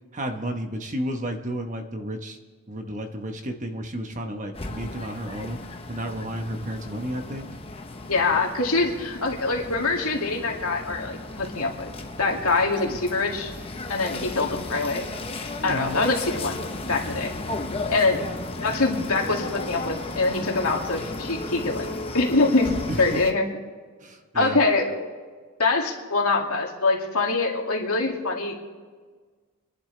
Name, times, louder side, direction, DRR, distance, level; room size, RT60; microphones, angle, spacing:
voice 1, 0.1-2.4 2.7-5.6 5.9-7.5 15.7-16.0 22.9-23.2 24.0-24.6, equal, 35° right, 5 dB, 1.1 m, -32 dB
sound 1, 4.5-23.3, left 2 dB, 25° left, 0.9 m, -35 dB
voice 2, 8.0-11.9 12.2-13.5 13.9-15.1 15.6-16.6 16.8-17.3 17.9-18.3 18.6-21.9 22.1-22.7 23.0-23.5 24.3-25.0 25.6-28.6, left 3 dB, 75° left, 0 dB, 2.4 m, -24 dB
30.0 x 11.5 x 3.3 m, 1.5 s
head